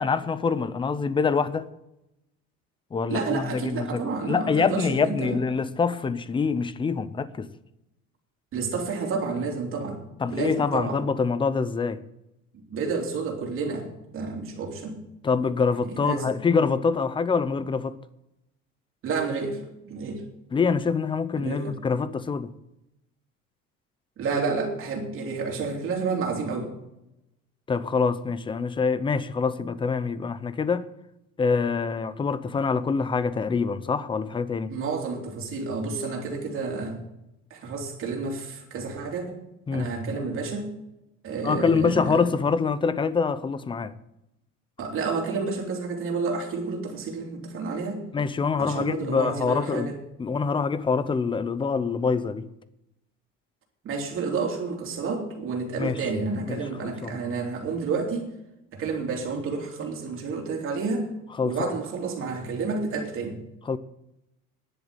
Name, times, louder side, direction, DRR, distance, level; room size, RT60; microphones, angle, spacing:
voice 1, 0.0-1.7 2.9-7.5 10.2-12.0 15.2-17.9 20.5-22.5 27.7-30.9 31.4-34.7 39.7-39.9 41.4-43.9 48.1-49.9 50.2-52.5 55.8-56.0 56.5-57.2 61.4-61.7 63.7-63.8, left 5 dB, 15° left, 0.6 m, -25 dB
voice 2, 3.1-5.4 8.5-10.0 10.3-11.0 12.5-15.0 15.8-16.3 19.0-20.2 21.3-21.7 24.2-26.7 34.7-37.0 37.5-39.4 39.7-40.7 41.2-42.3 44.8-48.0 48.5-50.0 53.8-58.3 58.7-61.1 61.4-63.4, right 4 dB, 45° right, 3.0 m, -30 dB
10.5 x 8.0 x 9.7 m
cardioid pair, 150°, 30 cm